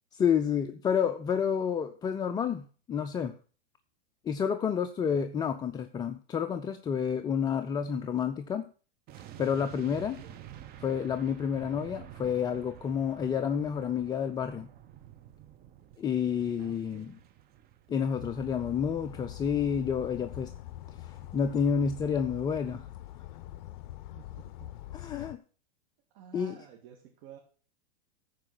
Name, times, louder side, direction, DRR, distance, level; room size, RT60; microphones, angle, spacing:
voice 1, 0.1-3.3 4.2-8.7 9.4-10.2 10.8-14.7 16.0-17.1 17.9-20.5 21.0-22.9 24.9-25.4 26.3-26.5, left 7 dB, 15° left, 8 dB, 0.4 m, -29 dB
sound 1, 9.1-22.2 22.5-22.7, right 11 dB, 35° right, 1.0 m, -51 dB
voice 2, 10.2-10.6 16.6-17.2 24.1-24.9 25.2-25.3 26.1-27.4, right 9 dB, 55° right, 0 dB, 2.2 m, -53 dB
sound 2, 18.2-25.4, left 14 dB, 55° left, 0.6 m, -44 dB
14.0 x 4.8 x 6.0 m, 0.39 s
hypercardioid pair, 120°, 29 cm